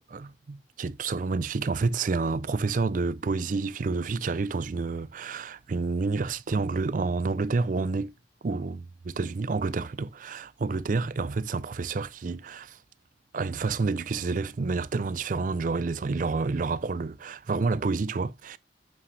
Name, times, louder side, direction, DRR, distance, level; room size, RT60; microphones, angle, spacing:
voice 1, 0.1-8.1 8.4-12.8 13.3-18.6, right 4 dB, 45° right, 0.4 m, -29 dB
7.4 x 5.6 x 3.2 m
head